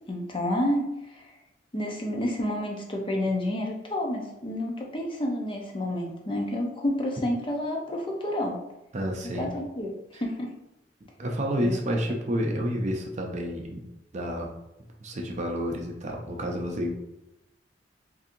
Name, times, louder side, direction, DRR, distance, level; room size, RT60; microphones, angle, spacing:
voice 1, 0.1-1.3 1.7-8.6 9.3-9.9 10.2-10.5 11.6-11.8, left 1 dB, 30° left, 1 dB, 0.6 m, -29 dB
voice 2, 8.9-9.5 10.1-10.2 11.2-13.8 14.1-14.5 15.0-17.0, equal, 40° right, 1 dB, 0.5 m, -29 dB
4.1 x 2.6 x 2.5 m, 0.92 s
head